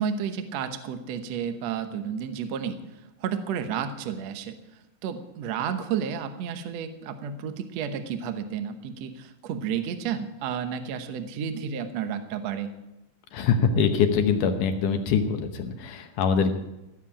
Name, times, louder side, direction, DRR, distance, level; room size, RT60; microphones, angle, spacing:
voice 1, 0.0-2.8 3.2-4.5 5.0-12.7, right 7 dB, 65° right, 8 dB, 1.7 m, -31 dB
voice 2, 13.3-16.5, left 6 dB, 70° left, 7 dB, 2.3 m, -23 dB
16.5 x 7.6 x 8.7 m, 0.94 s
omnidirectional pair, 4.2 m